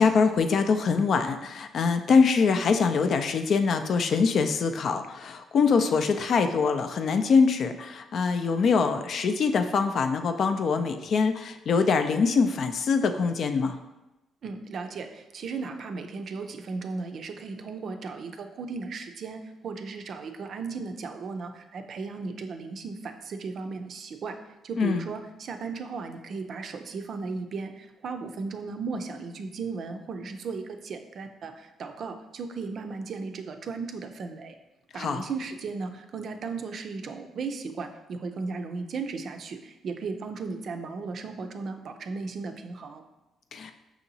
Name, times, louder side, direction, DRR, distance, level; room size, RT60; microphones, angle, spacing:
voice 1, 0.0-13.8 24.8-25.1 34.9-35.2 43.5-43.7, left 5 dB, 60° left, 7 dB, 0.4 m, -24 dB
voice 2, 14.4-24.4 24.6-34.5 34.9-43.0, right 4 dB, 60° right, 6 dB, 0.4 m, -36 dB
5.9 x 2.8 x 2.7 m, 0.99 s
cardioid pair, 90°, 0 cm